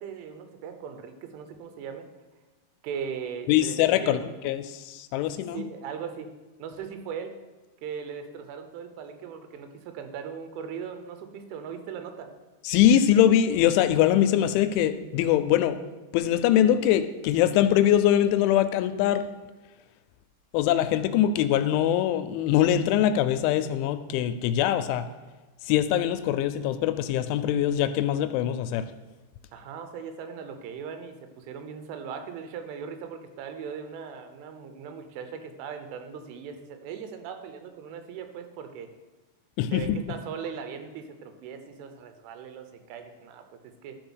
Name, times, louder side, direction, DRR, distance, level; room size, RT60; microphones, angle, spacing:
voice 1, 0.0-2.1 2.8-4.2 5.5-6.3 6.6-7.4 7.8-12.3 29.5-38.9 39.7-43.4 43.8-44.0, right 7 dB, 85° right, 7 dB, 3.4 m, -39 dB
voice 2, 3.5-5.6 12.7-15.8 16.1-19.2 20.5-25.0 25.7-28.9 39.6-40.0, left 11 dB, 85° left, 10 dB, 2.9 m, -23 dB
12.5 x 4.8 x 6.2 m, 1.2 s
omnidirectional pair, 5.5 m